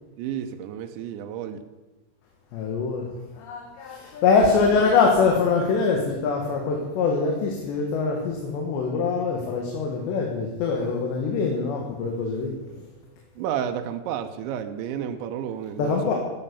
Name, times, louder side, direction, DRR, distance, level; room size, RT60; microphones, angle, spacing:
voice 1, 0.2-1.7 13.4-16.1, right 9 dB, 90° right, 7 dB, 3.2 m, -31 dB
voice 2, 2.5-12.8 15.8-16.1, left 4 dB, 75° left, 0 dB, 3.8 m, -24 dB
14.5 x 9.6 x 6.8 m, 1.1 s
omnidirectional pair, 5.1 m